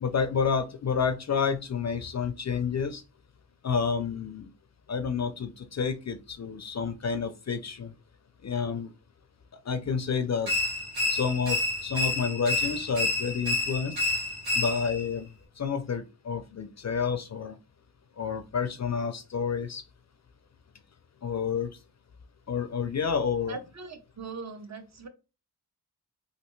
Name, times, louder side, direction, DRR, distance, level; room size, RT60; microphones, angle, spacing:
voice 1, 0.0-3.0 3.6-4.5 4.9-7.9 8.4-8.9 9.7-10.5 11.1-14.0 14.5-15.3 15.6-17.6 18.2-19.8 21.2-21.7 22.5-23.6, left 6 dB, 45° left, 9 dB, 0.4 m, -29 dB
sound 1, 10.5-15.1, left 2 dB, 65° right, 1.4 m, -29 dB
voice 2, 23.5-25.1, right 4 dB, 45° right, 7 dB, 0.7 m, -40 dB
3.2 x 2.6 x 3.0 m, 0.30 s
wide cardioid pair, 75°, 39 cm